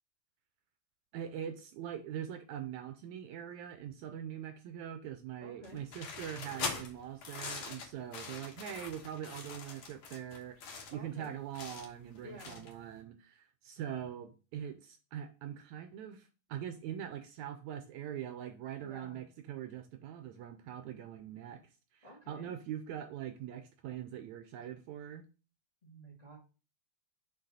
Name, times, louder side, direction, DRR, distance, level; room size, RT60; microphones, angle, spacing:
voice 1, 1.1-21.6 21.9-25.2, right 10 dB, 80° right, 8 dB, 1.8 m, -43 dB
voice 2, 5.4-5.8 10.9-11.4 12.2-12.6 18.8-19.2 22.0-22.5 25.8-26.4, equal, 20° left, -1 dB, 1.1 m, -51 dB
sound 1, 5.6-12.9, left 5 dB, 65° left, 2.3 m, -43 dB
6.5 x 4.6 x 4.0 m, 0.34 s
omnidirectional pair, 3.6 m